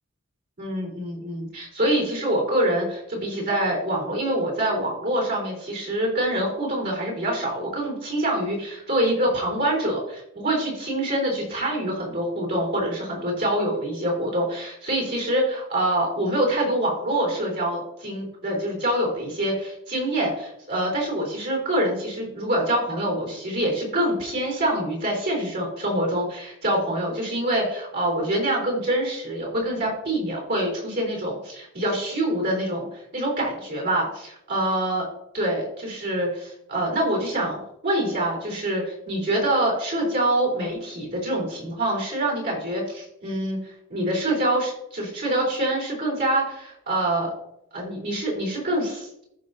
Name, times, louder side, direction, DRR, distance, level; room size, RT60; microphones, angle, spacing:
voice 1, 0.6-35.1 35.3-37.6 37.8-47.3 47.7-49.2, right 1 dB, 50° right, -2 dB, 3.8 m, -25 dB
14.5 x 5.6 x 2.7 m, 0.78 s
head